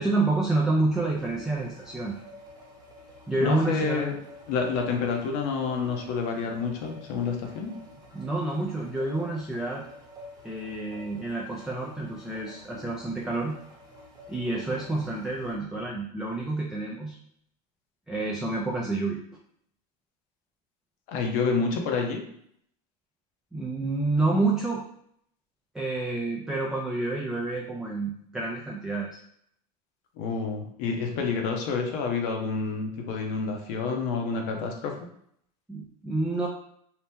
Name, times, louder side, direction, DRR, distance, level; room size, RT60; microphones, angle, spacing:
voice 1, 0.0-2.2 3.3-4.0 8.1-9.8 10.4-13.6 14.3-17.2 18.1-19.2 23.5-24.8 25.7-29.1 35.7-36.5, right 2 dB, 5° right, -3 dB, 0.3 m, -28 dB
sound 1, 1.1-15.6, left 1 dB, 20° right, 1.0 m, -49 dB
voice 2, 3.4-4.2 4.5-7.7 21.1-22.2 30.2-34.9, left 5 dB, 60° left, 2 dB, 0.7 m, -28 dB
2.8 x 2.1 x 3.5 m, 0.69 s
supercardioid pair, 110°, 21 cm